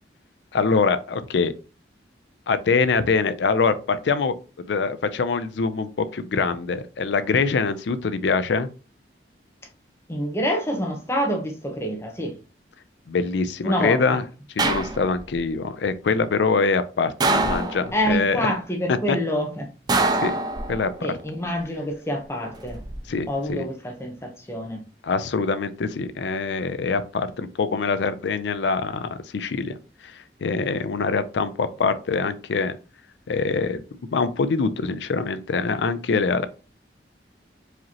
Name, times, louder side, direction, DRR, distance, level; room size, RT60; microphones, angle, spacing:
voice 1, 0.5-1.5 2.5-8.7 13.1-14.2 14.6-18.4 18.9-19.2 20.2-20.4 20.7-20.9 23.1-23.6 25.0-29.7 30.4-32.8 33.3-33.8 34.1-36.5, left 4 dB, 75° left, 0.4 m, -24 dB
voice 2, 10.1-12.4 13.6-14.2 17.9-19.7 21.0-22.8 23.3-24.8, equal, 15° left, 0.8 m, -27 dB
sound 1, 14.6-15.4 17.2-18.1 19.9-21.0 22.4-23.0, right 2 dB, 20° right, 0.4 m, -24 dB
4.8 x 3.1 x 2.8 m
head